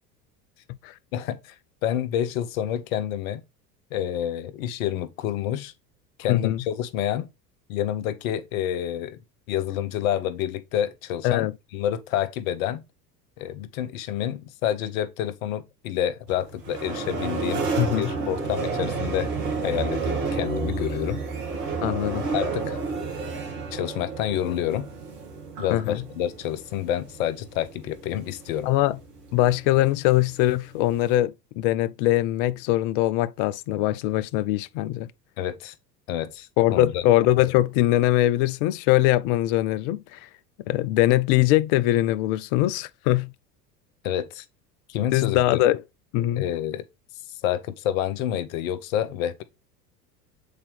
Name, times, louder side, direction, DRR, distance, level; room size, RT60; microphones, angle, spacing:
voice 1, 1.1-1.5 1.8-3.4 3.9-5.7 6.2-7.3 7.7-9.2 9.5-12.8 13.4-17.7 18.0-19.3 19.6-21.2 22.3-22.8 23.7-24.9 25.6-28.7 35.4-35.7 36.1-37.0 44.0-44.4 44.9-45.6 46.3-46.8 47.4-49.4, left 11 dB, 55° left, 0.9 m, -28 dB
voice 2, 6.3-6.6 11.2-11.5 17.8-18.1 21.8-22.2 25.7-26.0 28.7-29.0 29.3-35.1 36.6-40.3 40.7-43.3 45.1-45.8 46.1-46.4, left 15 dB, 40° left, 0.4 m, -22 dB
sound 1, 16.3-31.2, right 4 dB, 70° right, 2.3 m, -31 dB
8.0 x 4.3 x 3.4 m
figure-of-eight pair, 75°, 48 cm